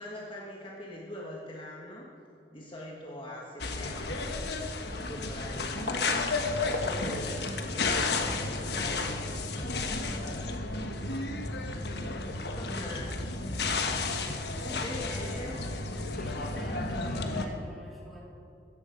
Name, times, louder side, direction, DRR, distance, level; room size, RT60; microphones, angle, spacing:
voice 1, 0.0-4.4 5.0-6.2 6.8-10.3 11.5-11.7 12.4-13.2 13.5-14.1 14.4-15.5, left 1 dB, 30° left, -3 dB, 1.7 m, -43 dB
sound 1, 3.6-17.5, left 3 dB, 65° left, 1.4 m, -32 dB
voice 2, 10.9-11.2 14.6-15.6 15.9-18.2, equal, ahead, -6 dB, 4.0 m, -47 dB
16.5 x 14.5 x 5.3 m, 2.6 s
head